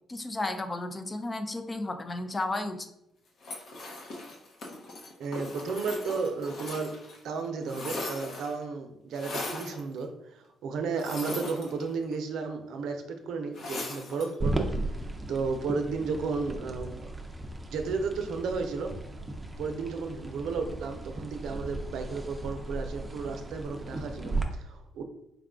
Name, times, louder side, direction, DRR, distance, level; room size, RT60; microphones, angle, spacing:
voice 1, 0.1-2.9, left 2 dB, 25° left, 7 dB, 0.5 m, -33 dB
sound 1, 3.4-7.2 7.4-8.6 9.1-9.8 10.9-12.1 13.5-14.3, left 2 dB, 70° left, 1.0 m, -39 dB
voice 2, 5.2-7.0 7.2-14.7 15.3-17.1 17.7-18.9 19.6-25.0, right 4 dB, 80° right, 5 dB, 0.6 m, -33 dB
sound 2, 14.4-24.4, right 2 dB, 20° right, 0.6 m, -36 dB
4.7 x 2.3 x 3.7 m, 0.84 s
cardioid pair, 90°, 0 cm